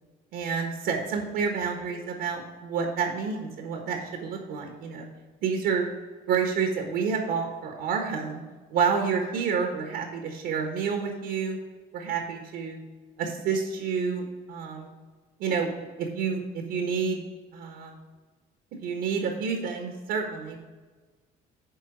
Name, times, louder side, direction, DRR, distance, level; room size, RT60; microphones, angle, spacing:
voice 1, 0.3-5.1 5.4-5.9 6.3-8.4 8.7-11.6 11.9-12.8 13.2-14.9 15.4-17.2 17.5-18.0 18.8-20.6, right 6 dB, 85° right, 3 dB, 1.3 m, -29 dB
9.9 x 3.4 x 6.1 m, 1.3 s
cardioid pair, 110°, 17 cm